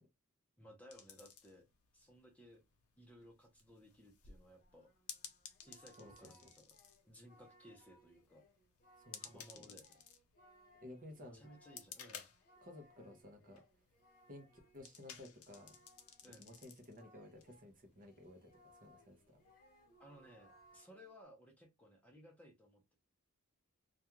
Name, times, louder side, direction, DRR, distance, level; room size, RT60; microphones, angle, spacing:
voice 1, 0.6-1.7 1.9-2.6 3.0-4.9 5.6-6.7 7.1-8.4 9.2-10.0 11.3-12.3 16.2-16.5 20.0-22.9, equal, 5° left, 0.6 m, -60 dB
sound 1, 0.9-20.8, left 8 dB, 70° left, 0.6 m, -58 dB
Singing, 4.6-17.7 18.0-21.2, equal, 40° left, 0.9 m, -67 dB
voice 2, 9.0-9.6 10.8-11.5 12.6-13.6 14.3-14.5 14.7-15.8 16.4-18.5 18.8-19.4, left 1 dB, 40° right, 0.6 m, -55 dB
2.3 x 2.3 x 2.9 m
head